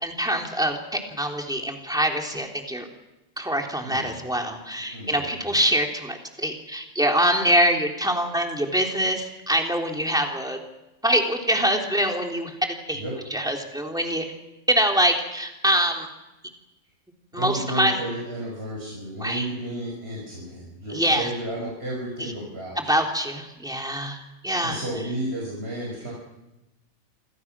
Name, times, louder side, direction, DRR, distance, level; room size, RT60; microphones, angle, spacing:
voice 1, 0.0-2.9 3.4-10.6 11.0-13.0 13.3-14.2 14.7-16.1 17.3-18.0 19.2-19.5 20.9-21.3 22.2-22.3 22.8-24.8, equal, 5° right, 1 dB, 3.3 m, -24 dB
voice 2, 3.8-4.2 4.9-5.3 12.9-13.2 17.3-22.8 24.6-26.1, right 1 dB, 45° right, -4 dB, 6.1 m, -32 dB
28.0 x 24.5 x 6.2 m, 0.99 s
omnidirectional pair, 1.4 m